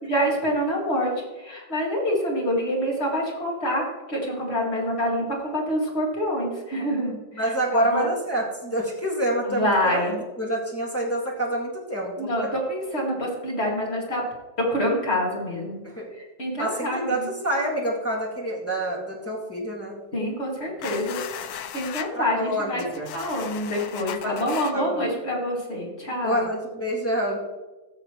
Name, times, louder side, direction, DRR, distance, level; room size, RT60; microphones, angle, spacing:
voice 1, 0.1-7.2 7.7-8.1 9.5-10.2 12.2-14.2 14.7-15.8 16.2-17.3 20.1-21.2 21.4-22.8 23.1-26.5, equal, 35° left, -2 dB, 2.3 m, -26 dB
voice 2, 7.3-10.0 10.4-12.3 15.8-16.1 16.6-20.0 22.1-23.1 24.2-24.4 24.7-25.1 26.2-27.4, right 1 dB, 10° left, -5 dB, 1.7 m, -27 dB
sound 1, 20.8-22.1 22.7-24.7, left 10 dB, 70° left, 0.9 m, -36 dB
15.0 x 6.7 x 3.0 m, 1.2 s
omnidirectional pair, 2.1 m